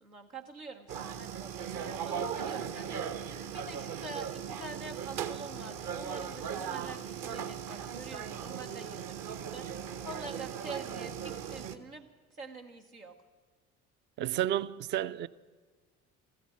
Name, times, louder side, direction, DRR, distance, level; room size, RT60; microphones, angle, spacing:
voice 1, 0.0-12.1 12.4-13.2, right 3 dB, 85° right, 1.1 m, -46 dB
sound 1, 0.9-11.8, right 8 dB, 50° right, 0.9 m, -38 dB
voice 2, 14.2-15.3, right 12 dB, 30° right, 0.4 m, -31 dB
14.5 x 13.0 x 7.4 m
figure-of-eight pair, 55°, 42 cm